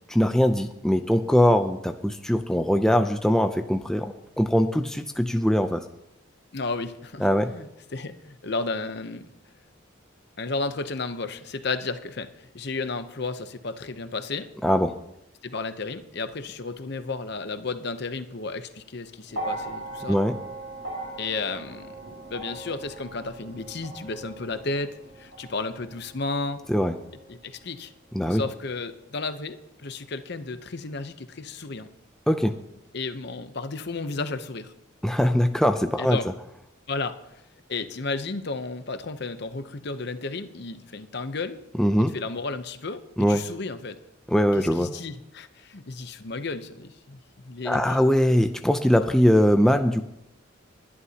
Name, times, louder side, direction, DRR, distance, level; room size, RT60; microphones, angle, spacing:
voice 1, 0.1-5.8 7.2-7.5 14.6-14.9 20.1-20.4 26.7-26.9 28.1-28.4 32.3-32.6 35.0-36.2 41.8-42.1 43.2-43.4 44.3-44.9 47.6-50.0, equal, 5° left, 6 dB, 0.5 m, -21 dB
voice 2, 6.5-7.3 7.5-9.2 10.4-14.5 15.4-20.2 21.2-21.9 22.3-24.9 25.2-26.6 27.3-27.9 28.3-31.9 32.9-34.7 36.0-36.3 36.9-37.4 37.7-41.6 42.0-43.0 43.3-44.0 44.6-48.0 49.0-49.2, left 3 dB, 55° left, 10 dB, 0.8 m, -33 dB
sound 1, 19.3-27.6 28.7-28.8, right 2 dB, 90° right, 3.3 m, -39 dB
20.5 x 11.0 x 2.9 m, 0.82 s
head